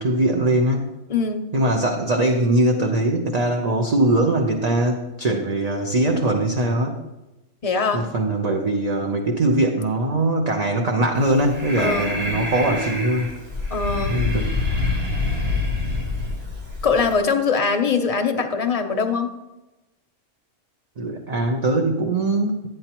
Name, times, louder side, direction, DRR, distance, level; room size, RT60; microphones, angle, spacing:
voice 1, 0.0-0.9 1.5-6.9 7.9-13.3 14.1-14.5 21.0-22.7, right 1 dB, 40° right, 2 dB, 0.7 m, -21 dB
voice 2, 1.1-1.5 7.6-8.1 11.8-12.1 13.7-14.2 16.8-19.3, left 5 dB, 35° left, 5 dB, 0.7 m, -22 dB
Breathing, 11.2-17.2, left 3 dB, 55° right, 1.9 m, -26 dB
11.5 x 9.1 x 3.0 m, 1.0 s
omnidirectional pair, 1.3 m